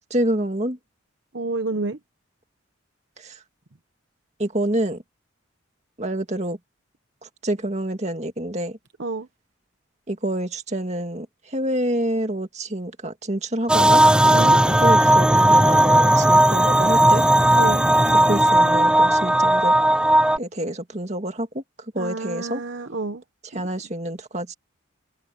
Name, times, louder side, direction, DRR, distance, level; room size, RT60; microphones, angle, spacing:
voice 1, 0.1-0.8 3.2-3.4 4.4-5.0 6.0-6.6 7.2-8.8 10.1-17.2 18.3-19.7 20.4-21.6 21.9-22.6 23.5-24.5, right 1 dB, 35° right, 2.2 m, -27 dB
voice 2, 1.3-2.0 9.0-9.3 14.3-14.6 17.6-17.9 22.0-23.2 23.5-23.7, right 3 dB, 60° right, 1.0 m, -29 dB
sound 1, 13.7-20.4, right 1 dB, 5° right, 0.4 m, -16 dB
head